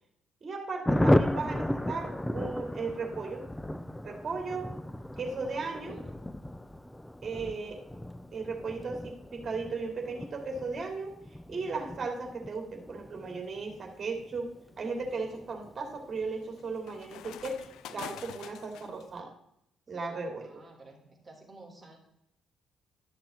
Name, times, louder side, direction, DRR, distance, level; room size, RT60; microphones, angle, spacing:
voice 1, 0.4-3.4 4.0-4.7 5.2-6.0 7.2-7.8 8.3-11.1 11.5-19.3 19.9-20.6, right 4 dB, 40° right, 2 dB, 2.8 m, -36 dB
Thunder, 0.8-17.0 17.3-17.4 17.6-17.8 18.0-18.4, left 1 dB, 10° left, 0.4 m, -34 dB
voice 2, 5.2-6.1 20.1-22.0, right 2 dB, 20° right, -1 dB, 3.4 m, -53 dB
sound 1, 13.7-13.9 14.4-19.1, left 11 dB, 85° left, 0.4 m, -47 dB
12.5 x 6.7 x 3.8 m, 0.75 s
cardioid pair, 90°, 0 cm